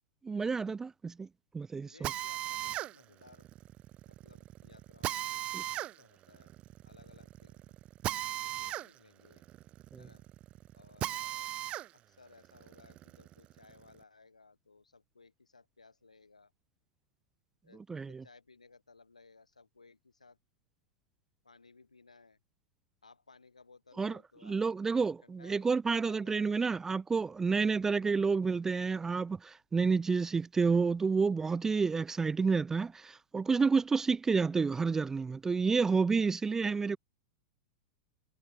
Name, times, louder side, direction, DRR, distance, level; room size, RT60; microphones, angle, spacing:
voice 1, 0.2-1.3 1.5-2.1 5.5-5.6 9.9-10.0 17.9-18.2 24.0-37.0, right 4 dB, 10° right, 0.4 m, -30 dB
voice 2, 1.8-3.5 4.0-6.5 6.9-7.8 8.0-9.4 10.0-10.2 10.7-11.5 11.9-16.5 17.6-20.4 21.4-22.4 23.0-24.6 25.2-25.7 26.1-26.5 27.5-27.8 35.9-36.0, left 4 dB, 80° left, 4.0 m, -60 dB
Drill, 2.0-11.9 12.3-13.9, right 14 dB, 30° right, 0.8 m, -39 dB
figure-of-eight pair, 95°, 4 cm